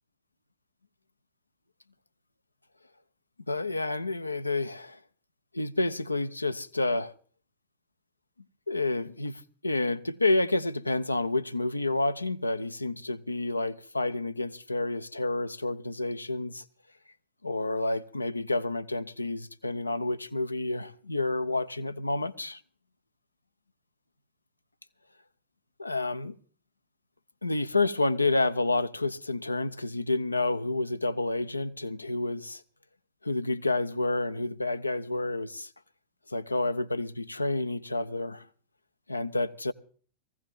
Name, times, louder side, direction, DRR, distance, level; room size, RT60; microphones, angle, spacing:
voice 1, 3.5-5.0 5.5-7.1 8.7-16.6 17.4-22.6 25.8-26.4 27.4-32.6 33.2-35.7 36.3-38.5 39.1-39.7, left 2 dB, 85° left, 0.7 m, -29 dB
19.5 x 15.5 x 3.6 m
figure-of-eight pair, 90°, 0 cm